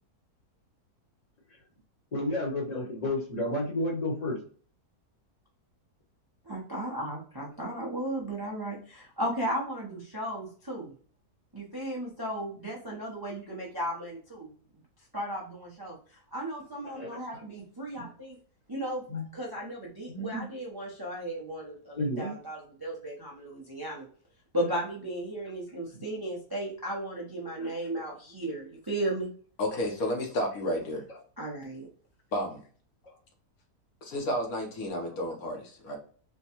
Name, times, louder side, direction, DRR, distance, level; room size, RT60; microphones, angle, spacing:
voice 1, 2.1-4.4 17.0-17.2 19.1-19.2 20.1-20.5 22.0-22.3 27.6-27.7, left 1 dB, 30° left, -1 dB, 0.9 m, -31 dB
voice 2, 6.5-10.9 11.5-14.5 15.1-18.4 18.7-19.0 19.3-24.1 24.5-29.3 31.4-31.9, right 1 dB, 25° right, -3 dB, 0.6 m, -35 dB
voice 3, 29.6-31.0 32.3-32.6 34.0-36.0, left 1 dB, 70° left, 1 dB, 1.3 m, -31 dB
4.4 x 2.2 x 2.9 m, 0.43 s
omnidirectional pair, 1.6 m